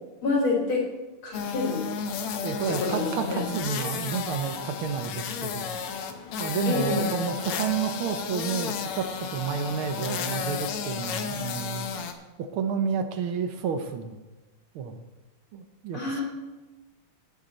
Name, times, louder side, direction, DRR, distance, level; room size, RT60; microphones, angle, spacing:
voice 1, 0.2-0.9 1.2-1.9 2.7-3.5 6.7-7.1 15.9-16.2, left 3 dB, 70° left, -1 dB, 4.0 m, -27 dB
sound 1, 1.3-12.1, left 6 dB, 90° left, 1.9 m, -33 dB
voice 2, 2.4-5.7 6.4-12.0 12.4-14.2 14.7-15.0 15.5-16.2, right 7 dB, 75° right, 8 dB, 1.7 m, -30 dB
18.5 x 6.6 x 4.2 m, 1.2 s
omnidirectional pair, 2.4 m